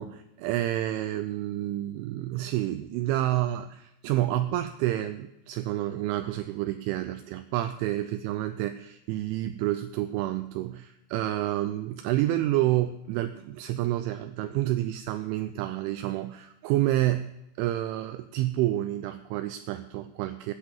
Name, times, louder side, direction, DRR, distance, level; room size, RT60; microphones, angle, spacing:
voice 1, 0.0-17.3 17.6-20.5, right 14 dB, 85° right, 9 dB, 2.8 m, -29 dB
13.0 x 8.8 x 5.5 m, 0.88 s
omnidirectional pair, 5.8 m